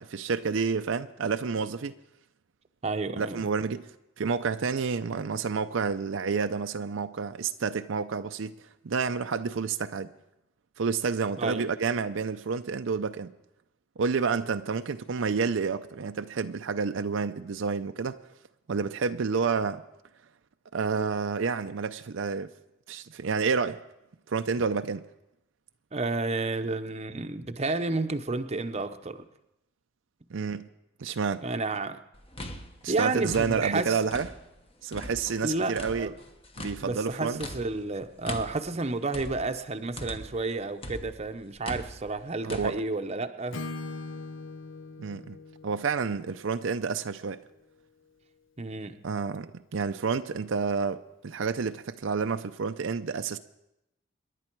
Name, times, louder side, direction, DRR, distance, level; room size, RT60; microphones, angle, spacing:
voice 1, 0.0-1.9 3.2-3.9 4.2-8.5 8.8-10.1 10.8-13.3 14.0-18.2 18.7-19.8 20.7-22.5 22.9-23.8 24.3-25.0 30.3-30.7 31.0-31.4 32.8-34.3 34.8-36.1 36.6-37.4 42.4-42.8 45.0-45.4 45.6-47.4 49.0-53.4, right 5 dB, 70° right, 0.5 m, -29 dB
voice 2, 2.8-3.4 11.4-11.6 25.9-29.3 31.4-32.0 32.9-34.0 35.4-36.1 36.8-43.6 48.6-49.1, right 3 dB, 30° right, 0.8 m, -31 dB
sound 1, 32.1-34.6 34.9-40.5 40.8-42.7, left 1 dB, 30° left, 1.1 m, -41 dB
Acoustic guitar / Strum, 43.5-47.5, left 3 dB, 70° left, 0.7 m, -41 dB
27.5 x 11.0 x 4.6 m
head